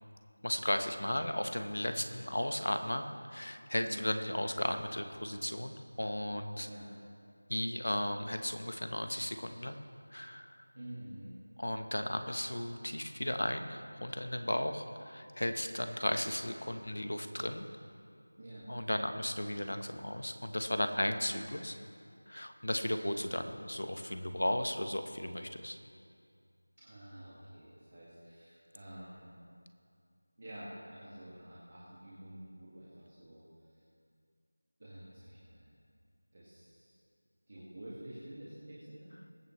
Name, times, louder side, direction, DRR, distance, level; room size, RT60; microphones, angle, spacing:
voice 1, 0.4-6.7 7.5-9.8 10.1-10.6 11.6-17.7 18.7-21.8 22.3-25.8, left 1 dB, 75° left, 7 dB, 1.2 m, -35 dB
voice 2, 6.6-6.9 10.7-11.4 18.4-18.7 26.8-29.3 30.4-33.8 34.8-35.7 36.3-36.9 37.5-39.1, right 1 dB, 25° right, -9 dB, 1.9 m, -49 dB
22.0 x 8.4 x 3.2 m, 2.3 s
figure-of-eight pair, 180°, 0 cm